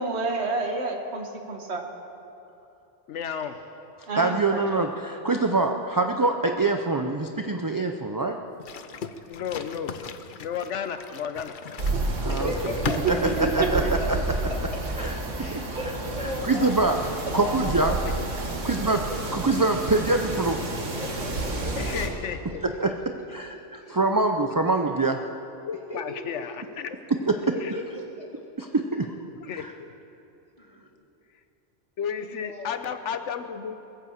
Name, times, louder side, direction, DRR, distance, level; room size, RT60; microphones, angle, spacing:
voice 1, 0.0-1.8 4.1-4.4 4.7-4.8 13.0-13.1 13.4-13.5, right 3 dB, 60° right, 3 dB, 1.6 m, -28 dB
voice 2, 3.1-3.6 9.3-10.0 10.4-11.6 21.8-22.7 24.4-24.5 25.6-27.0 27.6-27.7 29.3-29.9 32.0-33.8, left 7 dB, 75° left, 10 dB, 1.0 m, -33 dB
voice 3, 4.1-8.4 12.3-12.4 13.1-13.8 14.1-14.2 15.0-15.1 15.5-15.6 16.4-17.0 17.3-17.9 18.6-19.0 19.3-20.6 22.8-22.9 23.3-25.2 27.3-27.4 28.6-29.1 29.6-29.7, right 3 dB, 30° right, 4 dB, 0.4 m, -24 dB
sound 1, 8.6-14.0, left 6 dB, 50° left, 0.7 m, -38 dB
sound 2, 11.8-22.1, right 2 dB, 85° right, 1.9 m, -30 dB
voice 4, 12.2-13.0 14.5-14.8 15.4-16.7 17.4-18.3 18.6-18.9 21.0-21.9 22.3-22.4 23.8-24.0 25.9-26.4 27.5-28.3 30.6-30.9 32.1-32.7, left 1 dB, 30° left, -3 dB, 2.6 m, -36 dB
20.5 x 8.6 x 7.1 m, 2.9 s
omnidirectional pair, 1.2 m